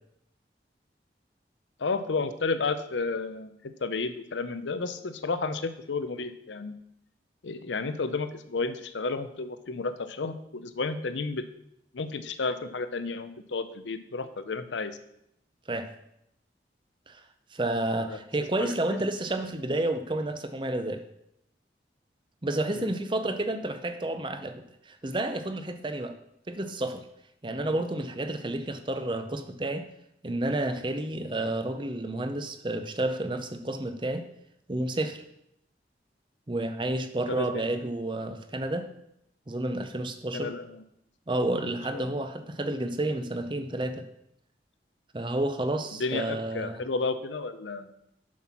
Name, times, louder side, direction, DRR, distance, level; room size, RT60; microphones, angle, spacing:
voice 1, 1.8-6.8 7.4-11.4 11.9-15.0 17.9-18.2 18.6-19.0 22.7-22.9 27.6-27.8 37.3-37.6 40.3-40.8 41.9-42.2 45.9-47.9, left 3 dB, 90° left, 11 dB, 0.7 m, -32 dB
voice 2, 17.5-21.0 22.4-26.2 26.5-27.0 27.4-29.8 30.2-34.2 34.7-35.2 36.5-38.9 39.5-40.5 41.3-44.1 45.1-46.8, right 1 dB, 25° right, 9 dB, 0.6 m, -30 dB
7.3 x 5.9 x 5.9 m, 0.77 s
head